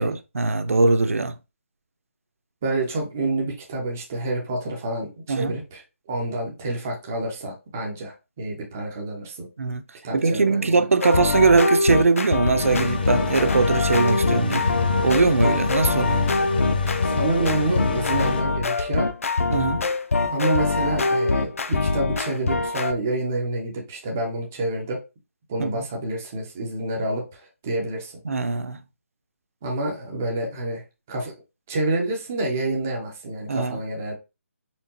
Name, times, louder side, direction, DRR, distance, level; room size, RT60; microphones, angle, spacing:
voice 1, 0.0-1.3 5.3-5.5 9.6-9.8 10.1-14.6 15.0-16.3 19.5-19.9 25.6-25.8 28.3-28.8 33.5-33.8, right 3 dB, 70° right, 0.6 m, -21 dB
voice 2, 2.6-9.5 10.0-10.8 17.0-19.1 20.3-25.0 25.5-28.1 29.6-30.8 31.1-31.3 31.7-34.1, right 2 dB, 10° right, 0.3 m, -28 dB
sound 1, 11.0-22.9, left 3 dB, 75° left, 0.6 m, -24 dB
sound 2, 12.6-18.4, left 4 dB, 40° left, 0.7 m, -27 dB
4.4 x 3.5 x 2.7 m
hypercardioid pair, 175°, 8 cm